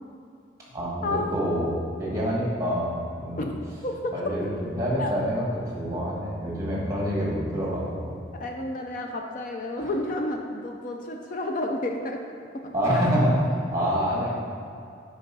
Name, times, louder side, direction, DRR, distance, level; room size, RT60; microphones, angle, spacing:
voice 1, 0.7-1.7 2.0-3.4 4.1-5.4 5.8-8.1 9.7-9.9 12.7-13.4 13.7-14.3, equal, 15° right, -5 dB, 1.6 m, -26 dB
voice 2, 8.4-12.2 12.5-13.1, left 1 dB, 45° left, 2 dB, 0.4 m, -31 dB
5.2 x 5.0 x 5.4 m, 2.6 s
head